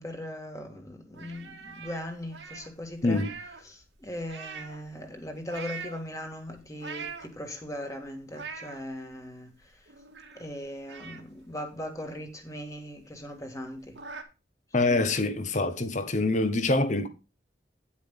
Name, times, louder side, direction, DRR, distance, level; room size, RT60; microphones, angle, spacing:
voice 1, 0.0-3.3 3.6-9.9 10.3-14.0, left 1 dB, 15° left, 1.8 m, -39 dB
sound 1, 1.1-3.7 4.0-4.9 5.4-6.0 6.6-7.6 8.0-8.8 9.3-9.4 9.6-10.5 10.9-12.4 12.8-12.9 13.2-13.3 13.6-14.2, right 5 dB, 80° right, 1.8 m, -42 dB
voice 2, 14.7-17.1, left 2 dB, 40° left, 1.1 m, -25 dB
9.7 x 8.5 x 3.7 m
head